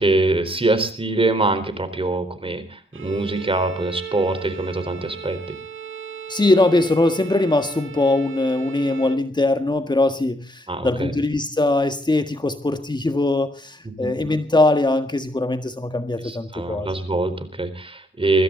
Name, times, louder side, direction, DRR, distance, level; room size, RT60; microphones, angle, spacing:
voice 1, 0.0-5.4 10.7-11.2 14.0-14.1 16.2-18.4, right 2 dB, 25° right, 11 dB, 4.2 m, -23 dB
Bowed string instrument, 2.9-9.3, right 9 dB, 80° right, 2.0 m, -37 dB
voice 2, 6.3-16.9, left 2 dB, 20° left, 8 dB, 1.6 m, -21 dB
22.0 x 15.0 x 3.8 m, 0.42 s
cardioid pair, 60°, 20 cm